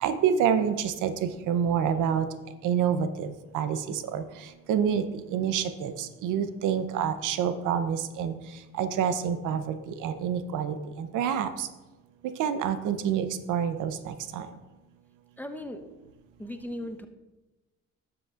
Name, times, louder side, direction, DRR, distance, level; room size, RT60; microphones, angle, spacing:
voice 1, 0.0-1.1 1.5-2.3 2.6-3.3 3.5-3.8 4.1-4.2 4.7-5.0 5.3-5.9 6.2-8.3 8.8-9.8 10.0-10.8 11.1-11.5 12.4-14.4, right 8 dB, 85° right, 10 dB, 0.7 m, -27 dB
voice 2, 15.4-15.9 16.4-17.1, left 1 dB, 5° left, 7 dB, 0.7 m, -37 dB
12.0 x 7.8 x 2.4 m, 1.1 s
cardioid pair, 90°, 30 cm